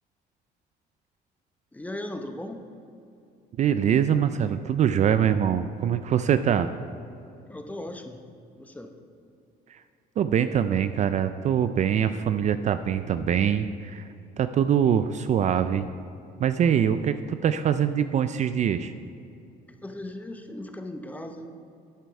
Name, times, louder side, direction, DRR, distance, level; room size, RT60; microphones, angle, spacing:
voice 1, 1.7-2.6 7.5-8.2 8.5-8.9 19.8-21.5, left 1 dB, 10° left, 5 dB, 0.8 m, -37 dB
voice 2, 3.6-6.7 9.7-9.8 10.2-14.0 14.4-15.8 16.4-18.9, right 8 dB, 45° right, 11 dB, 0.4 m, -23 dB
10.0 x 8.1 x 4.7 m, 2.6 s
cardioid pair, 110°, 17 cm